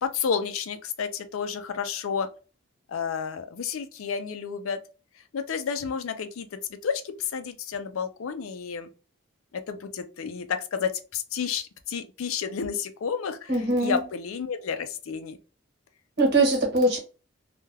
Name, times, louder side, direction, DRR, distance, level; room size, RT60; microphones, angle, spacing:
voice 1, 0.0-2.3 2.9-4.8 5.3-8.9 9.7-15.4, left 6 dB, 75° left, 0.4 m, -31 dB
voice 2, 13.5-14.0 16.2-17.0, right 2 dB, 55° right, 1.2 m, -22 dB
2.3 x 2.2 x 3.2 m
head